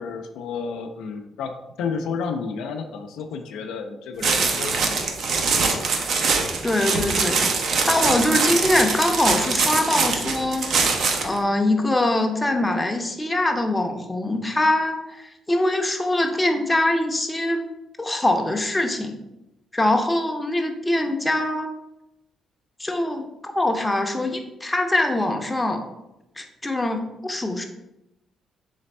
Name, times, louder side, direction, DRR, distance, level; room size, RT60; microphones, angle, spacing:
voice 1, 0.0-1.5 1.8-5.1, left 5 dB, 90° left, 5 dB, 0.4 m, -31 dB
sound 1, 4.2-11.4, right 4 dB, 65° right, 0.6 m, -23 dB
voice 2, 6.6-7.5 7.9-10.7 11.2-17.7 18.0-19.2 19.7-21.7 22.8-25.8 26.4-27.6, left 1 dB, 15° left, 4 dB, 0.6 m, -23 dB
3.3 x 3.3 x 4.1 m, 0.92 s
cardioid pair, 90°, 0 cm